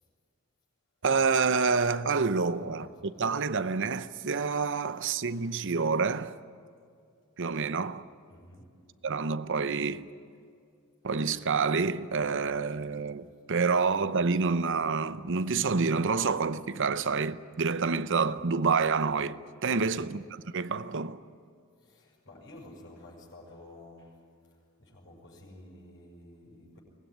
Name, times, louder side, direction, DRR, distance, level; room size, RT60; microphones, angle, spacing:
voice 1, 1.0-6.4 7.4-8.1 9.0-10.1 11.0-20.2 20.5-21.2, right 4 dB, 60° right, 0.8 m, -28 dB
voice 2, 2.1-3.3 5.1-5.2 8.3-8.7 13.5-13.7 19.7-20.2 21.7-26.8, left 1 dB, 60° left, 6.8 m, -51 dB
23.5 x 19.5 x 10.0 m
head